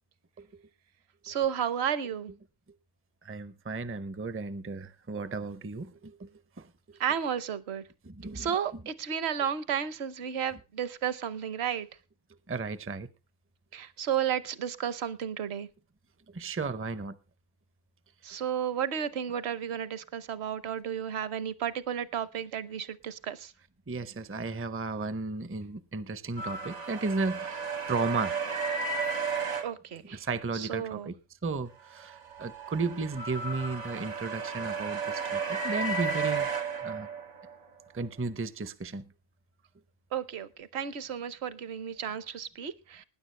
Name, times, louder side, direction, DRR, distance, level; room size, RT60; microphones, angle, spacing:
voice 1, 1.2-2.3 7.0-7.8 8.3-11.9 13.7-15.7 18.2-23.4 29.6-30.2 30.5-31.1 40.1-43.0, right 9 dB, 65° right, 1.0 m, -32 dB
voice 2, 3.2-6.3 6.6-6.7 8.0-8.8 12.5-13.1 16.3-17.2 23.9-28.4 30.0-36.5 36.8-37.1 37.9-39.1, right 3 dB, 15° right, 0.4 m, -34 dB
sound 1, 26.4-29.6 32.0-37.5, right 4 dB, 80° right, 2.0 m, -33 dB
19.5 x 9.9 x 3.2 m
omnidirectional pair, 1.2 m